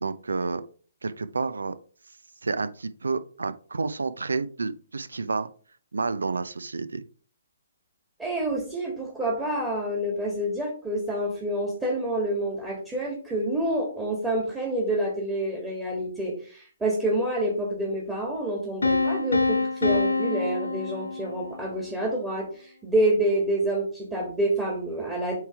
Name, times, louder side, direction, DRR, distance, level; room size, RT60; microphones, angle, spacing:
voice 1, 0.0-0.6 1.0-1.7 2.4-5.5 5.9-7.0, right 4 dB, 80° right, 14 dB, 0.6 m, -30 dB
voice 2, 8.2-25.4, right 1 dB, 10° right, -2 dB, 1.7 m, -28 dB
Piano, 18.8-21.7, left 3 dB, 85° left, 0.9 m, -26 dB
8.0 x 3.3 x 4.6 m, 0.43 s
figure-of-eight pair, 135°, 0 cm